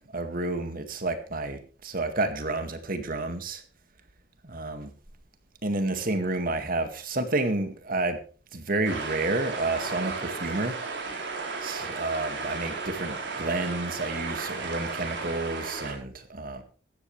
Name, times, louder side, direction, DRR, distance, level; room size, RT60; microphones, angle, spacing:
voice 1, 0.1-3.6 4.4-4.9 5.6-8.2 8.5-10.8 11.6-16.6, right 2 dB, 55° right, 8 dB, 2.1 m, -30 dB
sound 1, 8.8-15.9, right 4 dB, 75° right, 4.6 m, -34 dB
16.5 x 13.5 x 3.3 m, 0.39 s
head